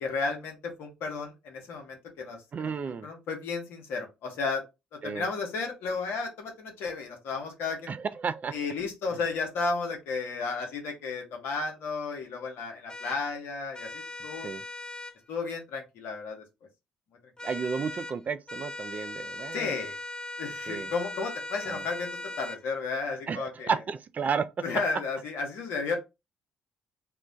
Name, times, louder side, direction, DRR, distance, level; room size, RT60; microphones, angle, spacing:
voice 1, 0.0-2.4 2.6-2.7 3.0-4.6 5.0-7.9 8.5-14.5 15.3-16.4 19.5-20.0 20.4-23.7 24.6-26.0, left 4 dB, 70° left, 0.9 m, -33 dB
voice 2, 2.5-3.1 5.0-5.3 7.9-8.6 14.4-14.6 17.4-19.7 20.7-20.9 21.7-21.8 23.3-24.5, right 6 dB, 45° right, 0.3 m, -32 dB
sound 1, 12.9-13.2 13.7-15.2 17.4-18.2 18.5-22.6, left 2 dB, 20° left, 0.4 m, -39 dB
2.3 x 2.1 x 3.9 m
hypercardioid pair, 50°, 4 cm